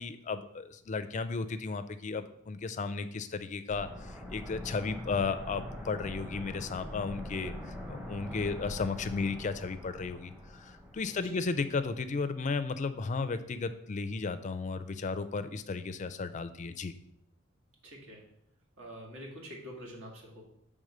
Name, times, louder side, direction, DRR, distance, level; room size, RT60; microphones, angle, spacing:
voice 1, 0.0-16.9, left 4 dB, 35° left, 10 dB, 0.4 m, -34 dB
sound 1, 3.7-12.4 12.7-12.8, left 1 dB, 5° right, 0.9 m, -44 dB
voice 2, 8.2-8.7 11.1-11.5 17.8-18.3 18.8-20.4, equal, 65° right, -1 dB, 1.8 m, -47 dB
6.6 x 3.7 x 4.9 m, 0.72 s
head